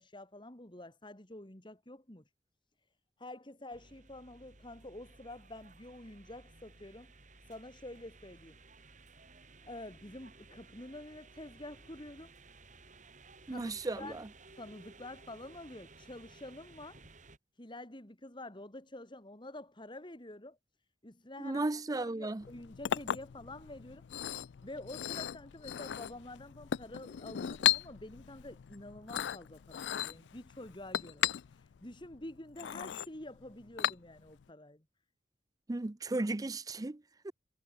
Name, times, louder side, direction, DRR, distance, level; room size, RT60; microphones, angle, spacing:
voice 1, 0.0-2.2 3.2-7.1 7.5-8.6 9.6-12.3 13.5-14.2 14.6-17.0 17.6-20.6 21.0-21.7 22.0-24.0 24.6-34.8, left 1 dB, 25° left, 2.7 m, -48 dB
sound 1, 3.7-17.4, right 3 dB, 45° right, 5.9 m, -57 dB
voice 2, 13.5-14.3 21.4-22.4 35.7-37.3, right 2 dB, 20° right, 0.5 m, -35 dB
Chink clink, 22.4-34.4, left 11 dB, 80° left, 0.4 m, -37 dB
head